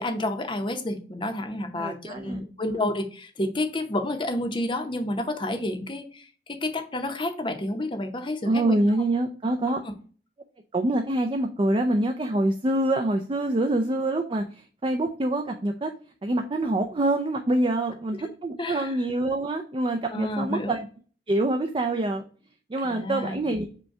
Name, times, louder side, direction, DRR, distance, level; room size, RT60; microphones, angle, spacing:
voice 1, 0.0-9.0 9.7-9.8 18.6-18.9 20.1-20.8 22.8-23.5, left 1 dB, 25° left, 5 dB, 0.7 m, -30 dB
voice 2, 1.8-2.4 8.5-9.8 10.7-15.9 16.2-20.9 21.3-22.2 22.7-23.7, right 1 dB, 30° right, 4 dB, 0.4 m, -25 dB
5.1 x 2.2 x 4.7 m, 0.41 s
head